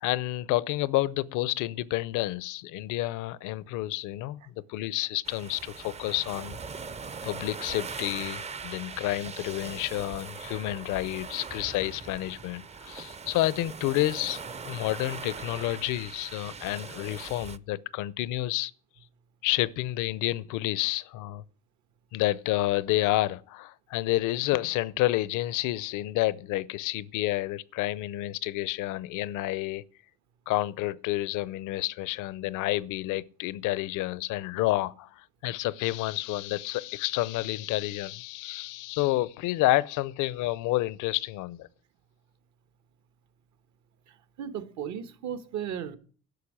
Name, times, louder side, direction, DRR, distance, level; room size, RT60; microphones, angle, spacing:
voice 1, 0.0-6.6 7.2-18.7 19.4-21.4 22.1-29.8 30.5-41.7, left 16 dB, 85° left, 0.7 m, -29 dB
sound 1, 5.2-17.6, right 5 dB, 20° right, 0.5 m, -41 dB
voice 2, 44.1-46.0, right 9 dB, 70° right, 1.5 m, -36 dB
12.0 x 6.5 x 8.8 m
cardioid pair, 120°, 30 cm